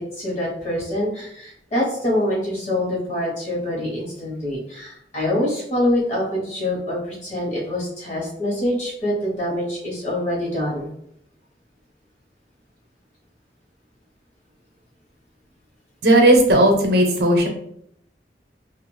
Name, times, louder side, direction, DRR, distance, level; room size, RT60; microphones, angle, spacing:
voice 1, 0.0-10.9, left 1 dB, 40° left, -4 dB, 1.0 m, -25 dB
voice 2, 16.0-17.5, right 1 dB, 65° right, 3 dB, 0.6 m, -15 dB
2.5 x 2.3 x 3.1 m, 0.72 s
head